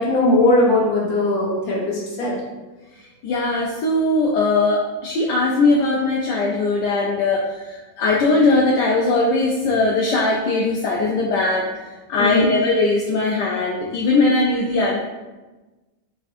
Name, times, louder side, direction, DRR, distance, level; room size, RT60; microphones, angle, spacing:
voice 1, 0.0-2.3 12.2-12.5, left 2 dB, 50° left, -5 dB, 1.5 m, -19 dB
voice 2, 3.2-11.7 12.1-15.0, left 2 dB, 75° left, -2 dB, 1.1 m, -20 dB
4.8 x 3.5 x 2.5 m, 1.2 s
omnidirectional pair, 2.1 m